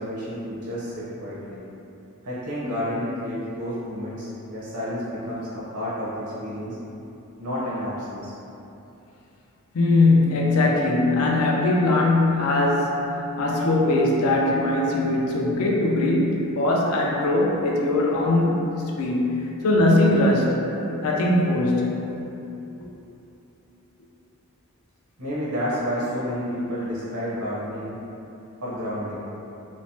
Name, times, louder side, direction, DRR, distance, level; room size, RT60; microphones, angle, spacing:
voice 1, 0.0-1.6 2.2-6.8 7.4-8.3 25.2-28.0 28.6-29.3, equal, 85° right, -9 dB, 0.8 m, -30 dB
voice 2, 9.7-18.6 19.0-20.6 21.0-21.9 22.8-22.9, left 2 dB, 70° left, -2 dB, 0.4 m, -21 dB
3.1 x 2.0 x 2.6 m, 2.9 s
head